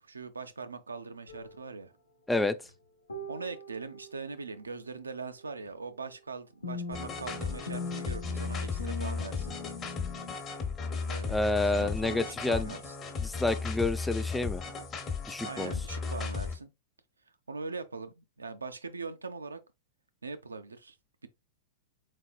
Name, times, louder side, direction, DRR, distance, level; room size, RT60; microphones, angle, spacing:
voice 1, 0.0-1.9 3.3-9.6 11.1-13.0 15.4-16.7 17.5-19.6 20.2-21.0, right 4 dB, 75° right, 0.5 m, -41 dB
sound 1, 1.3-1.5 3.1-4.2 6.6-10.3, left 3 dB, 80° left, 0.9 m, -41 dB
sound 2, 6.9-16.5, left 4 dB, 25° left, 0.9 m, -35 dB
voice 2, 11.3-12.7 13.2-14.6 15.3-15.7, left 2 dB, 5° left, 0.3 m, -29 dB
4.2 x 4.0 x 2.2 m
figure-of-eight pair, 95°, 0 cm